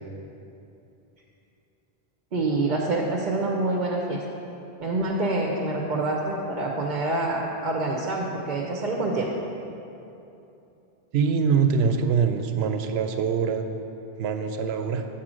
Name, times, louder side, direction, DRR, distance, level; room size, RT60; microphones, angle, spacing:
voice 1, 2.3-4.2 4.8-9.3, right 2 dB, 55° right, -1 dB, 0.7 m, -26 dB
voice 2, 11.1-13.7 14.2-15.1, right 6 dB, 85° right, 7 dB, 0.8 m, -24 dB
7.6 x 4.3 x 6.2 m, 2.9 s
omnidirectional pair, 1.0 m